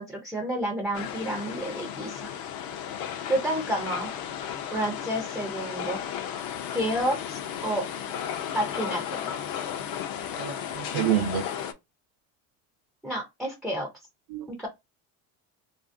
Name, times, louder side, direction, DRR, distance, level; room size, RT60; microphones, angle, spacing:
voice 1, 0.0-2.3 3.3-4.1 4.7-6.0 6.7-7.9 8.5-9.2 13.0-13.9 14.5-14.7, right 1 dB, ahead, 0.3 m, -30 dB
sound 1, 0.9-11.7, left 9 dB, 60° left, 0.5 m, -34 dB
voice 2, 10.4-11.5 14.3-14.5, right 10 dB, 60° right, 0.5 m, -27 dB
2.7 x 2.5 x 2.5 m
cardioid pair, 125°, 41 cm